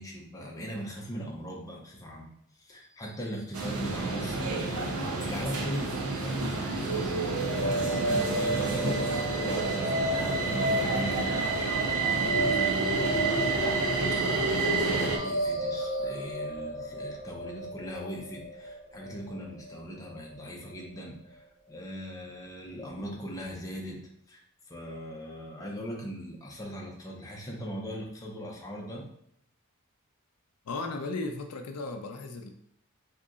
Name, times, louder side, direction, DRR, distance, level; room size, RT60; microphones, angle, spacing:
voice 1, 0.0-2.3 2.6-13.8 14.1-29.1, equal, 15° left, -2 dB, 0.6 m, -40 dB
sound 1, 3.5-15.2, right 3 dB, 75° right, 0.6 m, -29 dB
sound 2, 6.8-20.8, equal, 45° right, 1.1 m, -32 dB
voice 2, 30.6-32.5, left 3 dB, 80° left, 5 dB, 0.4 m, -35 dB
3.7 x 2.8 x 2.4 m, 0.73 s
head